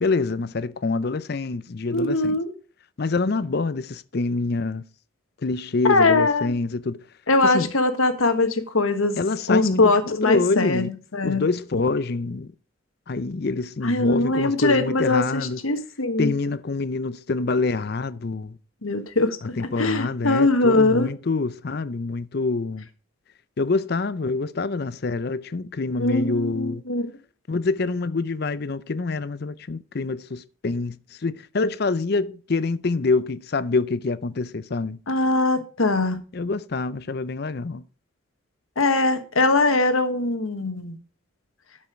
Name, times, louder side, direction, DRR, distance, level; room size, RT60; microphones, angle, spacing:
voice 1, 0.0-2.4 3.0-4.8 5.4-7.0 7.4-7.7 9.2-10.9 11.2-12.5 13.1-15.6 16.2-18.6 19.4-22.9 23.6-26.8 27.5-35.0 36.3-37.8, left 3 dB, 50° left, 0.5 m, -26 dB
voice 2, 1.9-2.5 5.9-6.5 7.3-9.2 9.5-10.9 11.1-11.5 13.8-16.3 18.8-21.1 26.0-27.1 35.1-36.2 38.8-41.0, left 2 dB, 85° left, 1.4 m, -21 dB
12.5 x 5.5 x 5.0 m
head